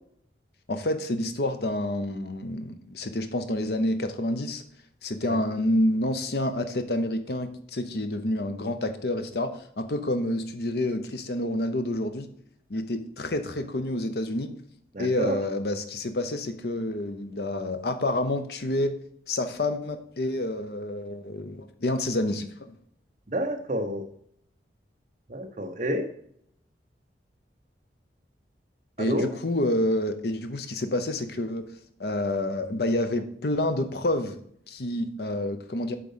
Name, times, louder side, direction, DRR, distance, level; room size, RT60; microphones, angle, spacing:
voice 1, 0.7-4.6 5.0-12.3 12.7-14.5 15.0-19.0 19.3-22.8 29.0-31.7 32.0-34.4 34.7-36.0, left 1 dB, 60° left, 8 dB, 0.8 m, -28 dB
voice 2, 14.9-15.4 23.3-24.0 25.3-26.1 29.0-29.3, equal, 40° right, 3 dB, 0.7 m, -29 dB
7.7 x 3.8 x 5.5 m, 0.66 s
head